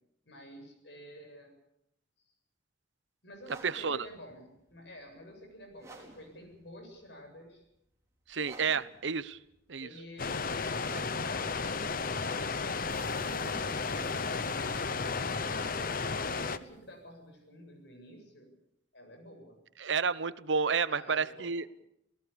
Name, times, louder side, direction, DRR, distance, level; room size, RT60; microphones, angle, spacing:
voice 1, 0.2-1.5 3.2-7.6 9.8-12.5 16.3-18.5 18.9-19.6 20.9-21.6, equal, 70° left, 5 dB, 7.7 m, -51 dB
sound 1, 3.3-13.2, right 2 dB, 15° right, 4.5 m, -54 dB
voice 2, 3.6-4.0 8.3-9.4 9.7-9.9 19.8-21.7, right 5 dB, 80° right, 15 dB, 0.9 m, -30 dB
sound 2, 10.2-16.6, left 4 dB, 50° left, 0.9 m, -33 dB
sound 3, 12.9-17.2, right 1 dB, 45° right, 3.8 m, -53 dB
28.5 x 18.0 x 7.0 m, 0.81 s
head